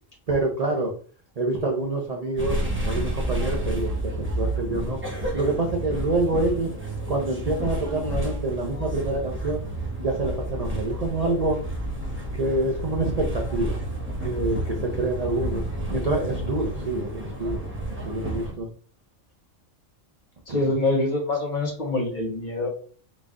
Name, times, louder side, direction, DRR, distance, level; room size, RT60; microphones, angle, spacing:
voice 1, 0.3-0.9 1.4-5.0 5.3-6.7 7.1-9.6 10.0-11.6 12.3-13.8 14.2-18.7 20.5-20.6, right 2 dB, 45° right, 0 dB, 0.5 m, -27 dB
sound 1, 2.4-18.5, right 1 dB, 10° right, 0.7 m, -30 dB
voice 2, 20.5-22.7, left 2 dB, 40° left, 0 dB, 1.0 m, -25 dB
4.0 x 2.3 x 3.6 m, 0.42 s
omnidirectional pair, 1.3 m